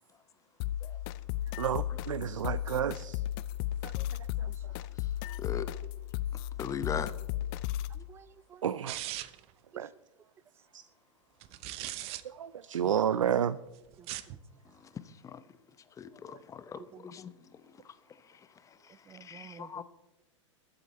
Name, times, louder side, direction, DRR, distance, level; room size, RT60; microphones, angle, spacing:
sound 1, 0.6-8.0, left 13 dB, 45° left, 0.6 m, -35 dB
voice 1, 1.6-3.2 3.8-4.7 8.6-9.0 9.7-9.9 10.7-10.9 12.2-13.6 16.3-16.4, right 9 dB, 80° right, 0.5 m, -32 dB
voice 2, 5.4-5.7 6.6-7.1 12.8-12.9 14.6-15.4 16.0-19.8, left 7 dB, 20° left, 0.8 m, -41 dB
voice 3, 7.9-8.6 9.7-9.8 14.0-14.4 16.9-17.1 18.9-19.8, right 8 dB, 15° right, 0.3 m, -53 dB
sound 2, 8.9-9.5 11.4-12.2 13.9-14.4, right 15 dB, 40° right, 0.8 m, -39 dB
21.0 x 7.9 x 4.3 m
hypercardioid pair, 105°, 16 cm